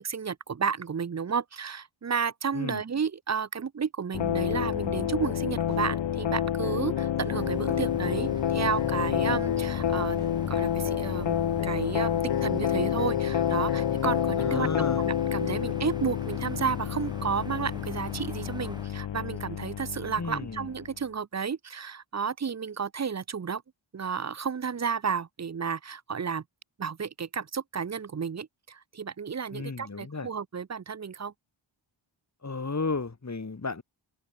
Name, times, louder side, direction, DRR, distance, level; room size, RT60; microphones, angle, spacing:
voice 1, 0.0-10.2 10.5-14.7 15.0-23.6 23.9-26.4 26.8-31.3, right 6 dB, 35° right, 0.6 m, -32 dB
sound 1, 4.1-20.9, left 10 dB, 65° left, 0.8 m, -29 dB
sound 2, 5.7-5.8 6.4-6.6 7.2-7.3 7.9-8.1 8.7-8.8 9.4-9.6 10.2-10.3, right 6 dB, 85° right, 4.0 m, -55 dB
sound 3, 7.4-18.9, right 1 dB, 10° right, 6.2 m, -45 dB
voice 2, 14.4-15.0 20.2-20.7 29.5-30.3 32.4-33.8, left 4 dB, 35° left, 3.1 m, -33 dB
open air
wide cardioid pair, 100°, 48 cm